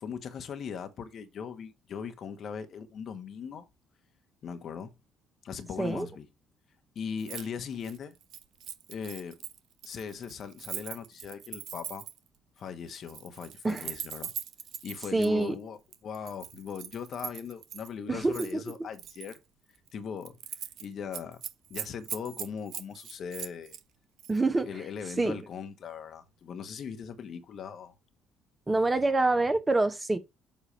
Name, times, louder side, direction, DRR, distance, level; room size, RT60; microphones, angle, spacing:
voice 1, 0.0-3.7 4.4-4.9 5.4-6.3 6.9-8.1 8.9-9.4 9.8-12.1 12.6-14.3 14.8-19.4 19.9-20.4 20.8-21.4 21.7-23.8 24.6-27.9, left 7 dB, 55° left, 1.1 m, -39 dB
Keys jangling, 7.2-7.5 7.7-12.3 12.9-15.3 15.9-17.9 18.3-19.4 19.8-19.9 20.2-20.8 21.1-23.8 24.2-24.4, right 9 dB, 60° right, 0.8 m, -41 dB
voice 2, 15.1-15.5 18.1-18.6 24.3-24.7 25.2-25.4 28.7-30.2, right 2 dB, 20° right, 1.2 m, -26 dB
7.4 x 2.8 x 5.6 m
hypercardioid pair, 50°, 0 cm